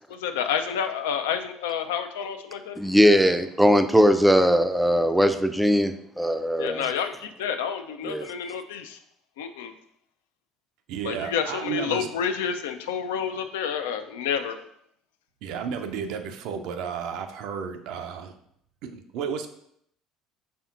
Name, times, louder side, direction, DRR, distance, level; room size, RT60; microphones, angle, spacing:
voice 1, 0.2-2.7 6.6-9.0 9.4-9.7 11.0-14.6, left 7 dB, 75° left, 7 dB, 0.3 m, -29 dB
voice 2, 2.8-6.9 8.0-8.3, equal, 5° right, 8 dB, 0.4 m, -20 dB
voice 3, 10.9-12.2 15.4-18.3 18.8-19.5, right 7 dB, 65° right, 6 dB, 0.4 m, -33 dB
4.4 x 3.4 x 2.4 m, 0.71 s
hypercardioid pair, 65°, 0 cm